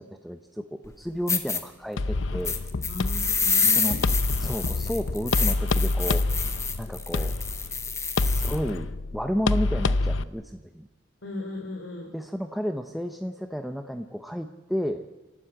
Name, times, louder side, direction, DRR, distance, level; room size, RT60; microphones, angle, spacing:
voice 1, 0.0-2.6 3.6-4.1 4.4-6.3 6.8-7.3 8.2-10.9 12.1-15.0, equal, ahead, 5 dB, 0.8 m, -32 dB
sound 1, 0.8-0.9 1.3-1.6 2.4-8.6, left 5 dB, 15° left, 1.4 m, -28 dB
sound 2, 2.0-10.2, left 2 dB, 90° left, 0.7 m, -27 dB
voice 2, 2.9-4.0 11.2-12.1, left 2 dB, 70° left, 0 dB, 3.2 m, -36 dB
30.0 x 12.5 x 8.9 m, 1.2 s
head